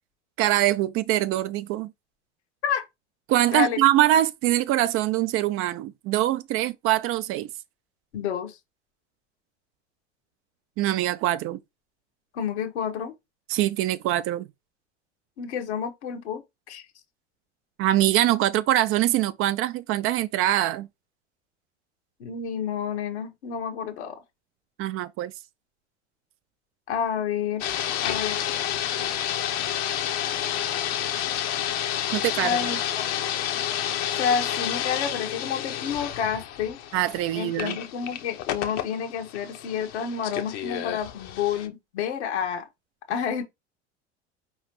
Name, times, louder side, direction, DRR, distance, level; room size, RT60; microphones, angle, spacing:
voice 1, 0.4-1.9 3.3-7.5 10.8-11.6 13.5-14.5 17.8-20.9 24.8-25.3 32.1-32.7 36.9-37.8, right 14 dB, 40° right, 0.4 m, -23 dB
voice 2, 8.1-8.5 12.3-13.1 15.4-16.4 16.7-16.8 22.2-24.2 26.9-28.4 32.4-32.8 33.1-33.2 34.1-36.8 37.3-42.7 43.1-43.4, left 7 dB, 70° left, 1.1 m, -29 dB
sound 1, 27.6-41.7, left 11 dB, 50° left, 0.8 m, -30 dB
4.9 x 3.0 x 3.0 m
hypercardioid pair, 75°, 35 cm